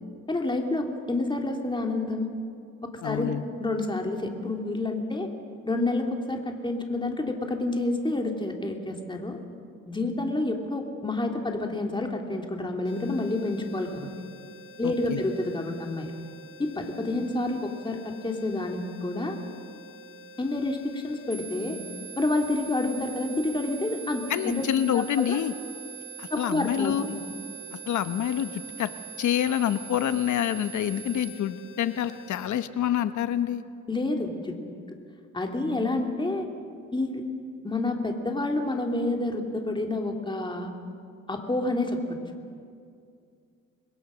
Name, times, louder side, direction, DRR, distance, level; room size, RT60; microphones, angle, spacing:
voice 1, 0.3-2.3 2.8-3.3 3.6-5.3 5.6-9.4 9.9-14.1 14.8-16.1 16.6-19.4 20.4-21.8 22.2-25.4 26.3-26.9 33.9-34.5 35.3-36.4 36.9-37.2 37.6-40.7 41.3-42.0, left 2 dB, 15° left, 2 dB, 2.9 m, -29 dB
voice 2, 3.0-3.4 14.8-15.2 24.3-25.5 26.2-27.1 27.9-28.9 29.2-33.6, left 10 dB, 70° left, 11 dB, 1.2 m, -27 dB
sound 1, 12.8-32.6, left 1 dB, 40° left, 7.3 m, -49 dB
sound 2, 21.3-31.3, right 14 dB, 10° right, 6.2 m, -43 dB
27.5 x 21.5 x 6.4 m, 2.4 s
cardioid pair, 90°, 30 cm